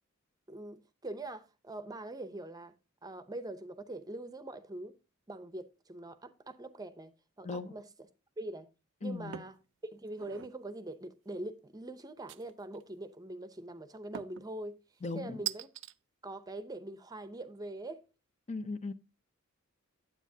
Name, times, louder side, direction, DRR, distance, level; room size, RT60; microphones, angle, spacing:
voice 1, 0.5-2.7 3.0-4.9 5.3-7.1 7.4-7.8 8.4-8.7 9.0-9.5 9.9-14.8 15.1-15.7 16.2-18.0, right 2 dB, 20° right, 0.6 m, -43 dB
voice 2, 7.4-7.7 9.0-9.4 15.0-15.4 18.5-18.9, left 3 dB, 30° left, 0.5 m, -38 dB
sound 1, 9.3-9.6 10.1-10.6 12.3-12.8 14.1-14.5 15.5-15.9, right 13 dB, 60° right, 0.4 m, -41 dB
9.5 x 8.1 x 2.7 m
head